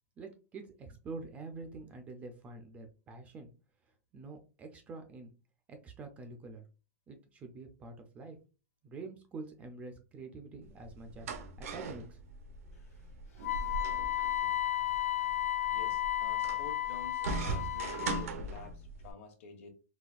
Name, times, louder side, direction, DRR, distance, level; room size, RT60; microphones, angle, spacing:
voice 1, 0.2-3.5 4.1-5.3 5.7-6.6 7.1-8.4 8.8-12.2, right 3 dB, 15° right, 6 dB, 0.4 m, -46 dB
sound 1, 10.6-19.1, right 3 dB, 75° right, 0.7 m, -40 dB
Wind instrument woodwind instrument, 13.4-18.2, left 13 dB, 80° left, 0.7 m, -33 dB
voice 2, 15.7-19.7, left 5 dB, 55° left, 4 dB, 1.0 m, -50 dB
4.0 x 2.3 x 2.4 m, 0.33 s
supercardioid pair, 155°, 8 cm